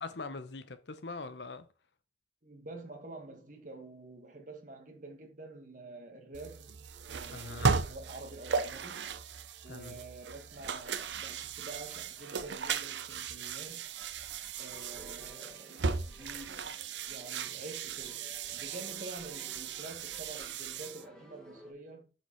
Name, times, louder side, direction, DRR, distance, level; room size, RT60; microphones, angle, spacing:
voice 1, 0.0-1.7 7.3-7.8 9.7-10.0, left 3 dB, 75° left, 0.9 m, -42 dB
voice 2, 2.4-6.7 7.0-9.3 9.6-13.9 14.6-22.1, right 2 dB, 45° right, 1.8 m, -48 dB
sound 1, 6.3-21.0, right 5 dB, 80° right, 0.7 m, -37 dB
sound 2, 14.6-21.7, left 1 dB, 5° left, 2.1 m, -56 dB
8.1 x 4.8 x 4.6 m
head